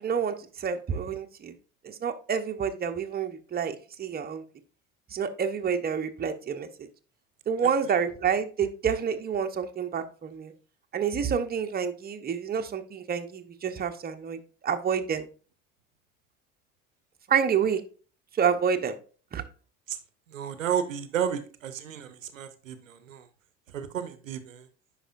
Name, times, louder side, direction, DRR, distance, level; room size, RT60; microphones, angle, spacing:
voice 1, 0.0-1.5 1.8-4.4 5.1-6.7 7.5-10.5 10.9-15.3 17.3-17.8 18.4-18.9 19.3-19.4, right 7 dB, 25° right, 6 dB, 0.9 m, -28 dB
voice 2, 20.3-23.3 23.7-24.7, right 8 dB, 85° right, 12 dB, 0.7 m, -32 dB
10.0 x 4.9 x 2.5 m, 0.38 s
figure-of-eight pair, 65°, 38 cm